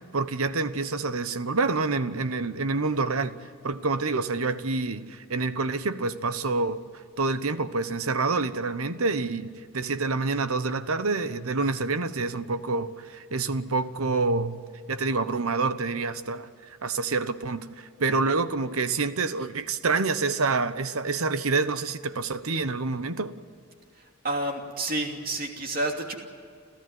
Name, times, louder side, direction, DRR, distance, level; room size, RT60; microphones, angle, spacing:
voice 1, 0.0-3.3 3.6-6.8 7.2-14.6 14.9-16.5 16.8-23.3, right 3 dB, 80° right, 1.1 m, -27 dB
voice 2, 24.0-26.2, right 2 dB, 40° right, 2.8 m, -30 dB
27.5 x 14.5 x 9.5 m
head